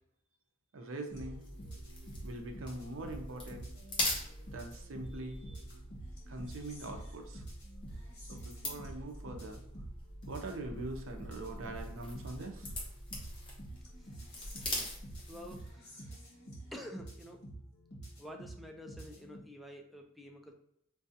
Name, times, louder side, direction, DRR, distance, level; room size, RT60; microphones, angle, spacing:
voice 1, 0.7-1.5 2.2-3.7 4.5-5.6 6.3-7.4 8.3-9.6 10.3-12.8, right 2 dB, 85° right, 4 dB, 0.6 m, -43 dB
sound 1, 1.1-19.4, right 1 dB, 60° left, 1.3 m, -48 dB
sound 2, 1.4-15.8, left 1 dB, 25° left, 1.0 m, -43 dB
voice 2, 15.3-16.2 16.7-17.4 18.2-20.5, equal, ahead, 1 dB, 0.4 m, -49 dB
4.7 x 2.3 x 2.7 m, 0.74 s
head